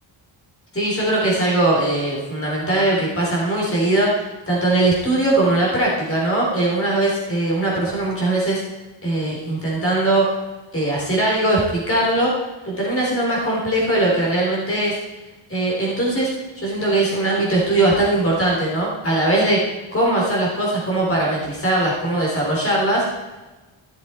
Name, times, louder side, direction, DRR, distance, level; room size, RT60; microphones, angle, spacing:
voice 1, 0.7-8.6 9.0-10.4 10.7-12.3 12.6-15.0 15.5-23.1, right 2 dB, 30° left, -4 dB, 3.9 m, -20 dB
15.5 x 7.3 x 4.5 m, 1.2 s
wide cardioid pair, 140°, 46 cm